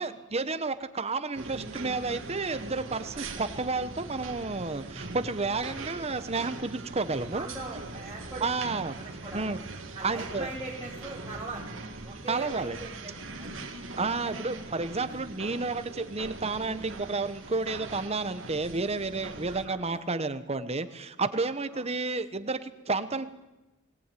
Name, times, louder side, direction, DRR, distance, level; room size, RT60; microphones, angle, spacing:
voice 1, 0.0-7.5 8.4-9.0 9.3-9.6 10.0-10.5 12.3-12.8 14.0-23.3, right 3 dB, 30° right, 11 dB, 1.1 m, -31 dB
sound 1, 1.4-19.7, right 3 dB, 70° right, 2.4 m, -41 dB
voice 2, 7.3-8.5 9.0-9.5 9.9-11.7 12.0-13.1 13.4-13.5 14.2-14.4 15.1-15.2 19.6-20.0 21.7-21.9, right 2 dB, 15° right, -7 dB, 3.8 m, -40 dB
20.5 x 18.5 x 9.2 m, 1.0 s
head